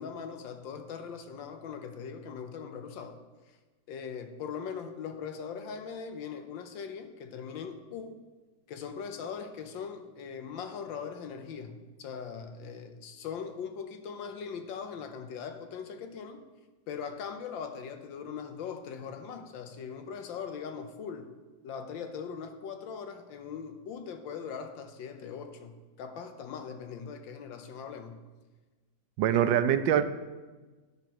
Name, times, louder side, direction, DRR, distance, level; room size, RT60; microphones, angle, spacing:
voice 1, 0.0-3.2 3.9-8.2 8.7-16.4 16.9-21.3 21.6-28.2 29.3-29.4, left 6 dB, 80° left, 8 dB, 1.5 m, -40 dB
voice 2, 29.2-30.0, right 10 dB, 80° right, 12 dB, 1.2 m, -24 dB
10.5 x 10.5 x 3.0 m, 1.3 s
omnidirectional pair, 2.1 m